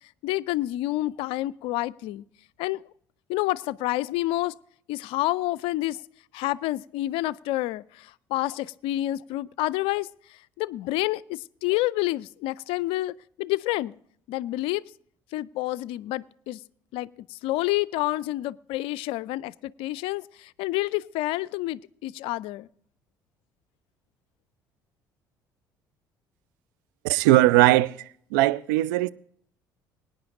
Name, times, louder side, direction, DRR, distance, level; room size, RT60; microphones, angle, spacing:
voice 1, 0.2-2.2 2.6-2.8 3.3-4.5 4.9-6.0 6.3-7.8 8.3-10.1 10.6-14.0 14.3-14.8 15.3-16.6 16.9-20.2 20.6-22.7, left 17 dB, 60° left, 0.4 m, -28 dB
voice 2, 27.0-29.1, right 17 dB, 70° right, 0.5 m, -20 dB
24.0 x 9.7 x 2.5 m
figure-of-eight pair, 55°, 11 cm